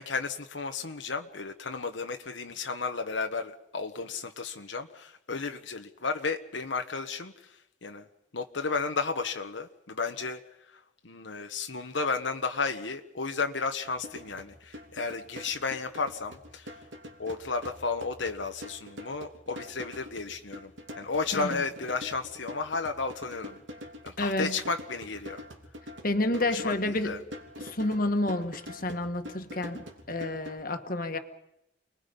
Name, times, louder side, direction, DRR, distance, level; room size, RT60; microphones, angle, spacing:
voice 1, 0.0-8.1 8.3-10.4 10.7-16.8 17.2-23.6 24.0-25.4 26.4-27.2, left 4 dB, 80° left, 5 dB, 1.3 m, -33 dB
sound 1, 13.8-30.6, equal, 85° right, 3.2 m, -45 dB
voice 2, 24.2-24.6 26.0-27.1 27.6-31.2, left 2 dB, 45° left, 7 dB, 1.7 m, -29 dB
29.5 x 21.0 x 5.4 m, 0.82 s
head